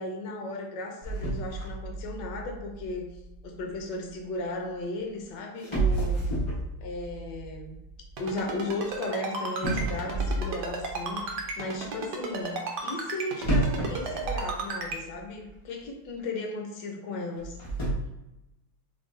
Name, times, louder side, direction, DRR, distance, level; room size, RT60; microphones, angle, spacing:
voice 1, 0.0-3.1 3.4-6.2 6.8-7.8 8.2-17.6, left 2 dB, 70° left, 2 dB, 1.2 m, -35 dB
sound 1, 1.0-4.2 5.1-5.2 5.6-9.0 9.6-11.5 13.4-15.2 15.5-15.6 16.2-16.3 17.3-17.9, right 2 dB, 35° left, 0.4 m, -31 dB
Ringtone, 8.2-15.0, right 4 dB, 70° right, 1.1 m, -33 dB
3.3 x 2.6 x 3.7 m, 0.93 s
omnidirectional pair, 2.3 m